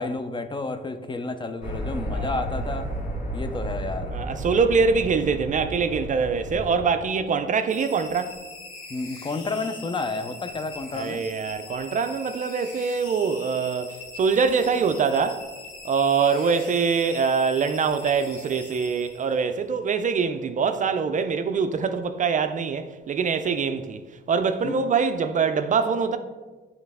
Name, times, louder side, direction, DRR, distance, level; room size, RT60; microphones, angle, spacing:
voice 1, 0.0-2.9 3.3-4.2 8.9-11.2 24.6-24.7, left 3 dB, 25° left, 0.5 m, -31 dB
sound 1, 1.6-6.8, right 1 dB, 40° left, 1.9 m, -32 dB
voice 2, 4.1-8.4 10.9-15.5 15.8-24.0 24.3-26.2, right 5 dB, 40° right, 0.4 m, -24 dB
sound 2, 7.7-19.5, left 3 dB, 85° left, 1.4 m, -42 dB
8.8 x 3.3 x 3.5 m
cardioid pair, 90°, 20 cm